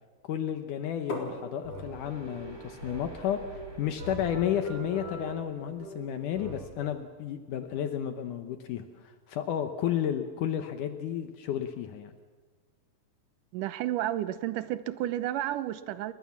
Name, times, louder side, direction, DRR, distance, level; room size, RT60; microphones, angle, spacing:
voice 1, 0.2-12.1, left 10 dB, 75° left, 7 dB, 2.5 m, -32 dB
sound 1, 0.8-6.8, right 2 dB, 45° right, 7.7 m, -42 dB
sound 2, 1.1-6.7, left 2 dB, 45° left, 4.8 m, -45 dB
sound 3, 1.9-7.0, right 1 dB, 10° right, 1.3 m, -54 dB
voice 2, 13.5-16.1, right 13 dB, 75° right, 14 dB, 2.4 m, -31 dB
29.5 x 21.0 x 7.3 m, 1.4 s
omnidirectional pair, 3.8 m